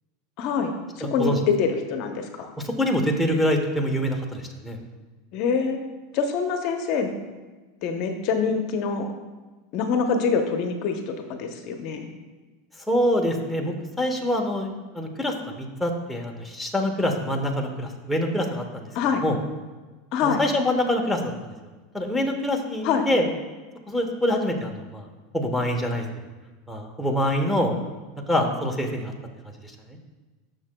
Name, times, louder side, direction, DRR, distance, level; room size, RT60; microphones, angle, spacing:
voice 1, 0.4-2.5 5.3-5.8 6.1-7.1 7.8-9.1 9.7-12.1 18.9-19.2 20.1-20.4 22.8-23.1, left 5 dB, 55° left, 5 dB, 0.8 m, -25 dB
voice 2, 1.0-1.4 2.6-4.8 12.9-14.7 14.9-18.8 19.2-19.4 20.2-21.5 21.9-23.2 23.9-25.1 25.3-26.0 26.7-27.8 28.3-29.1 29.6-29.7, left 1 dB, ahead, 0 dB, 1.0 m, -25 dB
11.5 x 6.4 x 2.3 m, 1.3 s
supercardioid pair, 110°, 0 cm